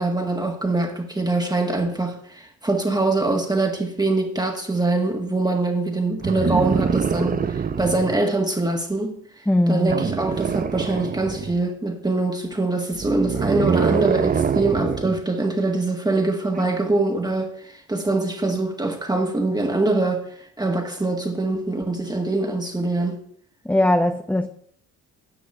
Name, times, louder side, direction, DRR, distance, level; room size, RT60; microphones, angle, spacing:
voice 1, 0.0-9.2 9.7-17.5 17.9-20.2 20.6-23.2, right 2 dB, 15° right, 1.8 m, -23 dB
sound 1, 6.2-8.2 9.9-11.6 12.9-15.2 16.5-16.7, right 6 dB, 30° right, 0.6 m, -24 dB
voice 2, 9.5-9.9 23.6-24.5, left 1 dB, 5° left, 0.7 m, -19 dB
10.0 x 6.2 x 8.5 m
cardioid pair, 90°, 30 cm